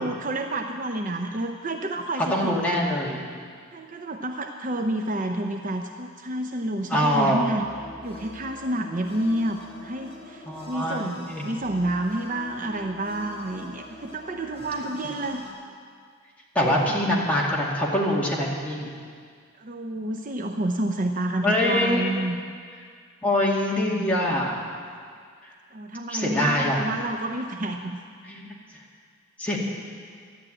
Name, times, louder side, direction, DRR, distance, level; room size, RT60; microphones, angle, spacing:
voice 1, 0.0-2.5 3.7-7.7 8.0-15.4 19.6-22.4 23.6-24.1 25.7-28.0, right 1 dB, 40° right, 4 dB, 0.6 m, -29 dB
voice 2, 2.3-3.2 6.9-7.5 10.5-11.4 16.5-18.9 21.4-22.1 23.2-24.6 25.4-25.5 26.1-26.8 28.2-28.5 29.4-29.6, left 1 dB, 5° left, -5 dB, 2.3 m, -24 dB
sound 1, 7.5-15.5, left 1 dB, 25° left, 2.9 m, -44 dB
13.0 x 10.5 x 8.7 m, 2.1 s
head